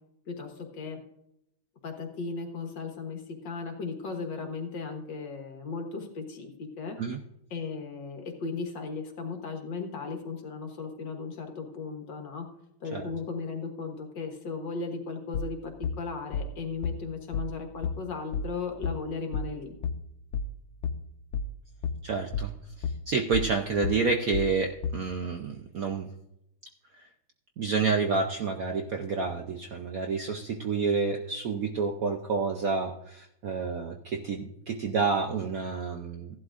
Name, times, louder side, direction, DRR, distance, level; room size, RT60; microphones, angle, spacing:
voice 1, 0.3-1.0 1.8-7.0 7.5-12.5 12.8-19.7, left 4 dB, 65° left, 3 dB, 2.1 m, -36 dB
sound 1, 15.3-25.1, left 5 dB, 80° left, 1.5 m, -33 dB
voice 2, 22.0-22.5 23.1-26.1 27.6-36.3, right 4 dB, 65° right, 3 dB, 0.9 m, -29 dB
16.0 x 11.5 x 2.5 m, 0.80 s
omnidirectional pair, 2.2 m